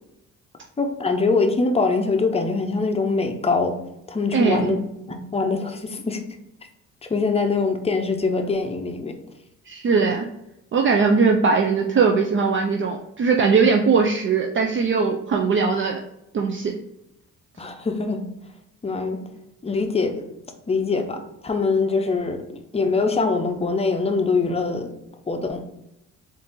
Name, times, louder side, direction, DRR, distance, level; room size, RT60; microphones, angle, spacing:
voice 1, 0.8-3.8 4.1-4.8 5.1-6.2 7.1-9.1 17.6-18.2 18.8-19.2 19.6-20.2 20.7-24.9 25.3-25.6, left 4 dB, 20° left, 5 dB, 0.6 m, -23 dB
voice 2, 4.3-4.8 9.7-10.3 10.7-16.0 16.3-16.7, right 5 dB, 40° right, 2 dB, 0.5 m, -20 dB
3.9 x 2.6 x 3.7 m, 0.84 s
cardioid pair, 90°, 30 cm